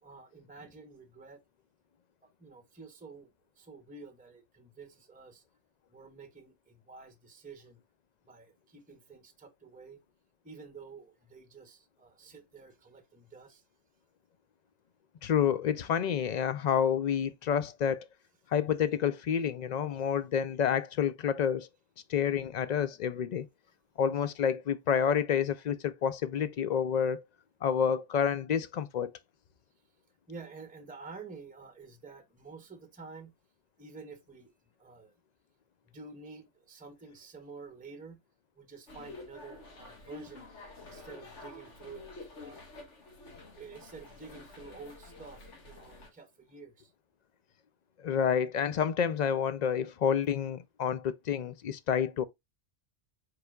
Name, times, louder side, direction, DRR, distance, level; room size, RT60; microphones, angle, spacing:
voice 1, 0.0-1.4 2.2-3.3 3.6-5.4 5.9-7.8 8.3-10.0 10.4-13.6 17.2-17.7 22.9-23.4 30.3-33.3 33.8-34.5 34.8-35.2 35.8-38.2 38.5-40.5 40.8-42.1 42.4-42.7 43.6-46.9, right 4 dB, 10° right, 0.7 m, -50 dB
voice 2, 15.2-18.1 18.5-21.7 22.1-23.5 24.0-27.2 27.6-29.1 48.0-52.3, left 8 dB, 60° left, 0.4 m, -29 dB
sound 1, 38.9-46.1, left 2 dB, 85° left, 1.9 m, -49 dB
4.9 x 4.7 x 2.3 m
omnidirectional pair, 1.2 m